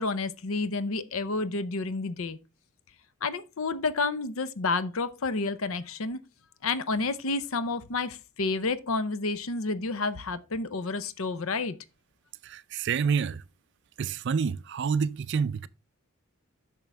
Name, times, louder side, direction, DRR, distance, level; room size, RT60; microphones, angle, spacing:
voice 1, 0.0-2.4 3.2-6.2 6.6-11.8, left 3 dB, 75° left, 0.7 m, -30 dB
voice 2, 12.4-13.4 14.0-15.7, right 6 dB, 55° right, 0.4 m, -28 dB
9.1 x 6.1 x 3.4 m
head